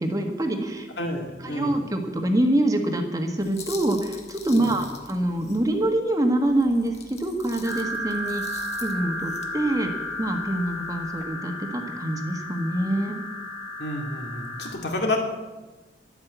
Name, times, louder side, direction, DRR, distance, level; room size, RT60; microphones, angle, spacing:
voice 1, 0.0-0.9 1.4-6.9 7.2-8.4 8.8-13.2, right 1 dB, 20° right, 4 dB, 1.4 m, -25 dB
voice 2, 1.0-1.9 4.5-4.7 13.8-15.2, left 1 dB, 65° left, 2 dB, 2.2 m, -29 dB
sound 1, 3.4-6.0 6.4-11.2, left 5 dB, 35° left, 1.4 m, -45 dB
sound 2, 7.6-14.7, left 1 dB, 90° left, 3.6 m, -33 dB
12.0 x 9.0 x 8.1 m, 1.2 s
head